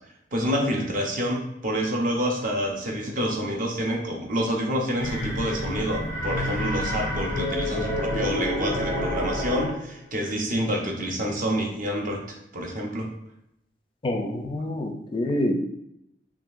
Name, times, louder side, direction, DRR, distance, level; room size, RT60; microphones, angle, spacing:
voice 1, 0.3-13.1, equal, 50° right, 0 dB, 0.7 m, -28 dB
sound 1, 5.0-9.9, left 1 dB, 85° right, 1.3 m, -28 dB
voice 2, 14.0-15.5, left 1 dB, 30° left, 4 dB, 0.4 m, -27 dB
3.7 x 3.1 x 2.5 m, 0.78 s
head